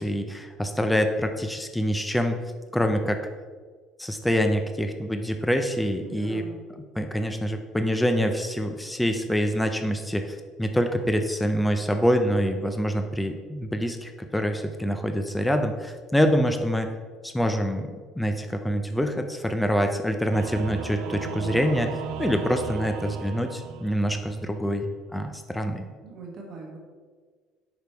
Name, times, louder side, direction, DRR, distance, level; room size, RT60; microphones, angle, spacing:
voice 1, 0.0-2.4 2.7-3.2 4.0-6.4 7.0-16.9 17.2-21.9 22.2-25.9, equal, 5° left, 6 dB, 0.4 m, -25 dB
voice 2, 6.0-6.7 26.0-26.8, right 3 dB, 45° right, 0 dB, 1.3 m, -41 dB
Singing / Musical instrument, 20.3-24.4, right 7 dB, 75° right, 0.5 m, -35 dB
5.1 x 4.9 x 4.5 m, 1.5 s
cardioid pair, 145°, 0 cm